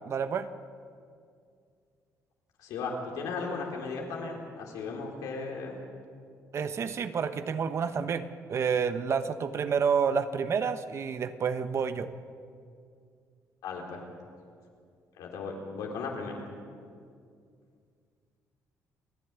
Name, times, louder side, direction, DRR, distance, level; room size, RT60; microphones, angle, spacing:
voice 1, 0.0-0.5 6.5-12.1, right 6 dB, 50° right, 11 dB, 1.1 m, -29 dB
voice 2, 2.6-5.8 13.6-14.0 15.2-16.3, left 4 dB, 85° left, 0 dB, 4.2 m, -36 dB
29.5 x 10.5 x 8.3 m, 2.3 s
cardioid pair, 95°, 6 cm